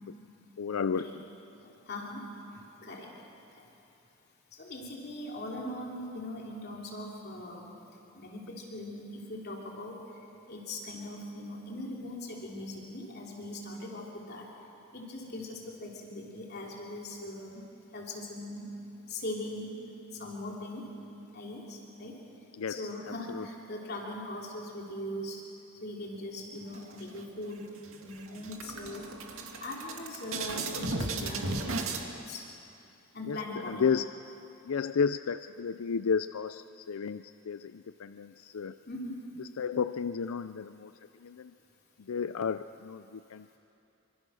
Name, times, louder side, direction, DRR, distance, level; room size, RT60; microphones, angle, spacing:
voice 1, 0.6-1.2 22.5-22.9 23.3-23.5 33.2-34.0 34.6-38.8 39.4-40.9 41.2-41.5 42.0-43.6, left 6 dB, 85° left, 12 dB, 0.5 m, -32 dB
voice 2, 1.9-2.2 2.5-3.1 4.6-7.7 8.1-10.0 10.5-14.4 14.9-17.6 17.9-18.7 19.1-19.8 20.1-20.9 21.3-22.2 22.7-25.4 25.8-27.7 28.0-29.0 29.6-32.4 33.1-33.9 38.9-39.2, left 1 dB, 50° left, -2 dB, 3.2 m, -40 dB
sound 1, 26.7-27.5 27.8-28.0 28.3-32.0, right 3 dB, 75° right, 2.2 m, -35 dB
26.0 x 24.5 x 6.4 m, 2.8 s
head